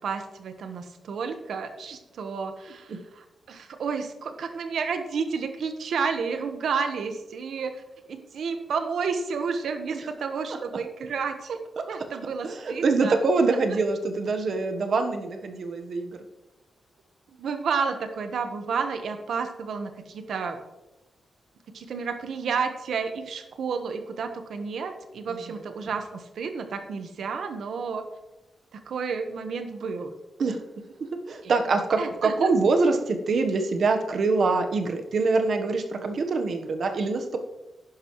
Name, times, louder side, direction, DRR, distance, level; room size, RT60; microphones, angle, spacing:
voice 1, 0.0-7.8 8.1-11.6 11.9-13.2 17.4-20.6 21.7-28.0 28.7-30.1 31.4-31.5 32.0-32.5, right 5 dB, 75° right, 7 dB, 1.2 m, -31 dB
voice 2, 12.4-16.2 25.3-25.4 30.4-30.6 31.3-37.4, right 3 dB, 55° right, 5 dB, 1.1 m, -24 dB
11.0 x 10.5 x 3.1 m, 1.0 s
wide cardioid pair, 160°, 0 cm